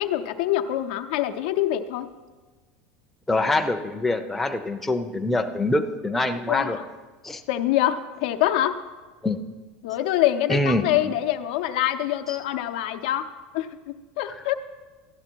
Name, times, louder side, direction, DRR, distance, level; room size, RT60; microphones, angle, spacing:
voice 1, 0.0-2.1 6.5-6.9 7.5-8.8 9.8-13.3 13.5-14.5, left 13 dB, 80° left, 7 dB, 0.7 m, -25 dB
voice 2, 3.3-6.8 7.2-7.4 9.2-9.4 10.5-10.8 12.3-12.4, left 2 dB, 5° left, 5 dB, 0.5 m, -24 dB
12.5 x 10.5 x 4.5 m, 1.3 s
supercardioid pair, 145°, 5 cm